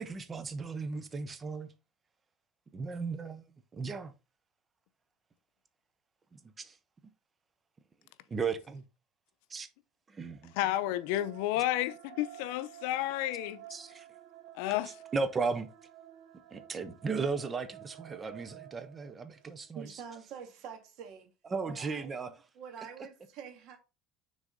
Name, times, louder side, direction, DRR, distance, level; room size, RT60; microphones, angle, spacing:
voice 1, 0.0-1.7 2.7-3.4 3.7-4.1 6.3-6.8 8.3-8.8 9.5-9.7 10.1-10.5 13.7-14.1 15.1-15.7 16.5-19.9 21.5-22.3, right 4 dB, 20° right, 0.7 m, -35 dB
sound 1, 10.3-19.6, right 12 dB, 70° right, 0.7 m, -52 dB
voice 2, 10.6-13.6 14.5-14.9, left 14 dB, 80° left, 0.5 m, -31 dB
voice 3, 19.7-21.3 21.6-23.8, right 7 dB, 55° right, 1.8 m, -47 dB
6.3 x 3.9 x 3.8 m
cardioid pair, 160°, 0 cm